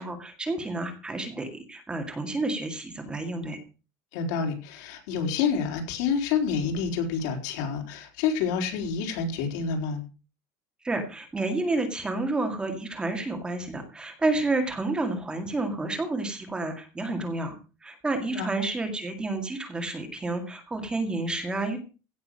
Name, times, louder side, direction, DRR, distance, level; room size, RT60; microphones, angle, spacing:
voice 1, 0.0-3.6 10.8-17.5 17.8-21.8, right 2 dB, 10° right, 4 dB, 2.0 m, -30 dB
voice 2, 4.1-10.0 18.3-18.5, left 6 dB, 75° left, 3 dB, 4.3 m, -28 dB
16.5 x 6.7 x 6.5 m, 0.35 s
cardioid pair, 175°, 9 cm